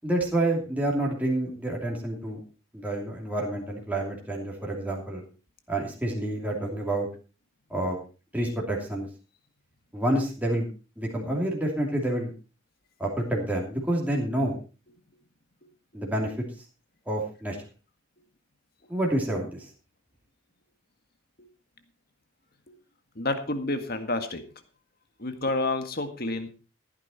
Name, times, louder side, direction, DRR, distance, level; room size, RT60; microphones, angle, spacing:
voice 1, 0.0-2.4 2.7-5.2 5.7-7.1 7.7-8.0 8.3-9.1 9.9-10.7 11.0-12.3 13.0-14.6 15.9-16.3 17.1-17.6 18.9-19.7, right 1 dB, 5° right, -2 dB, 2.8 m, -28 dB
voice 2, 23.2-24.4 25.2-26.5, left 2 dB, 45° left, 7 dB, 1.8 m, -29 dB
15.0 x 10.0 x 4.3 m, 0.34 s
head